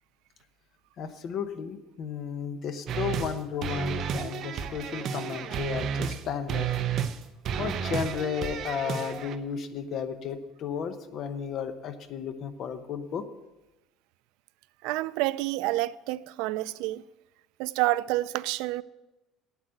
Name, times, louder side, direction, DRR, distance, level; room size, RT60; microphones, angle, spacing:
voice 1, 1.0-6.7 7.6-13.3, left 7 dB, 40° left, 0.9 m, -33 dB
sound 1, 2.9-3.3 3.6-6.2 6.5-7.2 7.4-9.4, right 7 dB, 40° right, 0.6 m, -31 dB
voice 2, 14.8-17.0 17.6-18.8, right 17 dB, 75° right, 0.4 m, -28 dB
9.1 x 8.1 x 7.7 m
cardioid pair, 175°, 0 cm